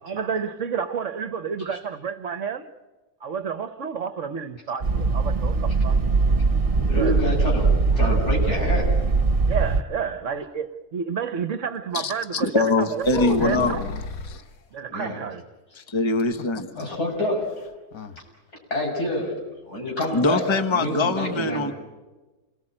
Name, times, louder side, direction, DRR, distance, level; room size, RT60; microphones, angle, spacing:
voice 1, 0.0-2.7 3.2-6.0 6.9-7.2 9.4-13.8 14.7-15.4, right 6 dB, 55° right, 1.3 m, -30 dB
sound 1, 4.8-9.8, right 4 dB, 40° right, 1.5 m, -21 dB
voice 2, 6.8-9.0 14.9-15.2 16.8-17.7 18.7-19.3 19.7-20.4 20.7-21.7, left 1 dB, 90° left, 7.4 m, -27 dB
voice 3, 11.9-13.7 14.3-14.4 15.8-16.7 20.1-21.7, left 2 dB, 20° left, 1.3 m, -23 dB
sound 2, 13.0-14.5 16.2-17.2 17.4-17.5 17.9-18.2, left 5 dB, 65° left, 1.5 m, -31 dB
28.5 x 20.5 x 8.9 m
omnidirectional pair, 1.6 m